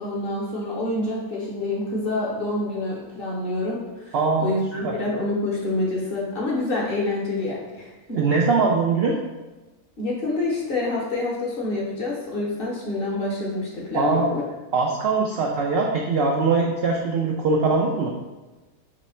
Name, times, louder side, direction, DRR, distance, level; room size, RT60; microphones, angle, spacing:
voice 1, 0.0-8.2 10.0-14.4, left 2 dB, 45° left, -4 dB, 0.8 m, -27 dB
voice 2, 4.1-4.5 4.8-4.9 8.1-9.2 13.9-14.3 14.7-18.1, right 4 dB, 80° right, -1 dB, 0.5 m, -21 dB
3.1 x 3.1 x 4.2 m, 1.2 s
omnidirectional pair, 1.6 m